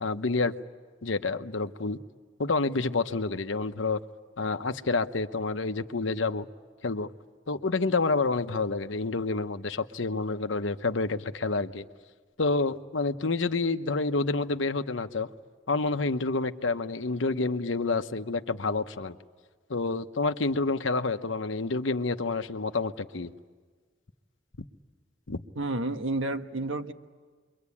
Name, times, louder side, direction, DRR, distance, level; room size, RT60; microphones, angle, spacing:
voice 1, 0.0-0.5 1.0-2.0 2.4-4.0 4.4-6.5 6.8-7.1 7.5-11.8 12.4-15.3 15.7-19.1 19.7-23.3 25.3-25.4, left 3 dB, 75° left, 9 dB, 1.0 m, -28 dB
voice 2, 25.5-26.9, right 2 dB, 90° right, 7 dB, 1.3 m, -30 dB
29.0 x 23.5 x 8.5 m, 1.5 s
head